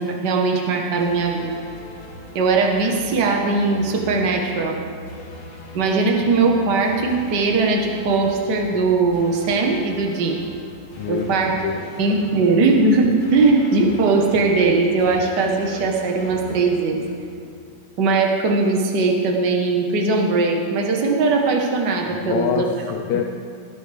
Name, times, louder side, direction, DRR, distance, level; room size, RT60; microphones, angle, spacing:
voice 1, 0.0-1.5 2.3-4.8 5.7-10.4 11.1-11.6 12.0-17.0 18.0-22.7, right 3 dB, 85° right, 1 dB, 0.9 m, -19 dB
sound 1, 1.0-18.0, equal, 70° left, 4.4 m, -40 dB
voice 2, 11.0-11.4 11.6-12.0 22.1-23.2, left 8 dB, 85° left, 3 dB, 1.6 m, -25 dB
17.5 x 13.5 x 3.4 m, 2.1 s
omnidirectional pair, 4.0 m